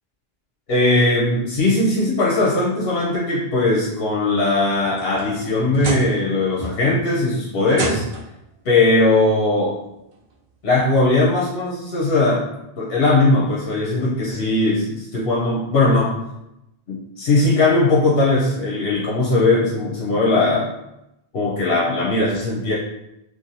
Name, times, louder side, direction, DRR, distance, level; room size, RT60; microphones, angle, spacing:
voice 1, 0.7-8.0 8.6-9.8 10.6-12.5 12.8-16.2 16.9-20.7 21.3-22.7, left 2 dB, 75° left, -5 dB, 0.9 m, -19 dB
sound 1, 4.7-6.3 6.6-7.1 7.7-8.4 9.6-9.7 10.3-10.4 12.0-12.1, right 3 dB, 80° right, 0.8 m, -30 dB
3.1 x 2.4 x 2.6 m, 0.87 s
omnidirectional pair, 1.0 m